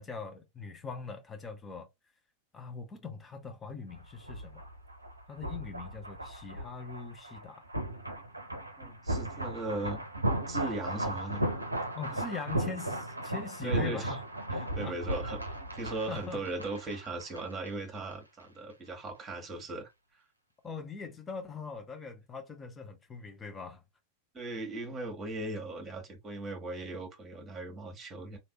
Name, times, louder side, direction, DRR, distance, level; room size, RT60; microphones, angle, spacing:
voice 1, 0.0-1.9 2.5-4.7 5.3-7.7 11.9-14.2 14.8-15.0 16.1-16.4 20.6-23.8, left 5 dB, 20° left, 0.9 m, -42 dB
sound 1, 3.9-17.7 18.0-18.1, right 1 dB, 85° right, 0.6 m, -36 dB
voice 2, 8.8-10.0 10.5-11.8 12.1-12.3 13.6-14.2 14.5-15.4 15.7-19.9 24.3-28.4, right 2 dB, 20° right, 1.5 m, -38 dB
3.2 x 2.7 x 2.9 m
figure-of-eight pair, 90°, 0 cm